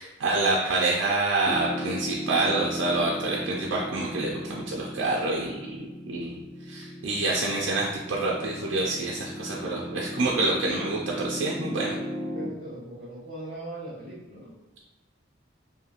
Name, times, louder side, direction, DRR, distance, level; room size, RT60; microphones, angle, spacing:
voice 1, 0.0-6.3 6.7-11.9, right 2 dB, 85° right, -3 dB, 0.4 m, -27 dB
Piano, 1.5-12.5, equal, 10° left, 0.6 m, -36 dB
voice 2, 12.3-14.5, right 1 dB, 45° right, -9 dB, 0.8 m, -39 dB
2.9 x 2.5 x 2.4 m, 1.1 s
head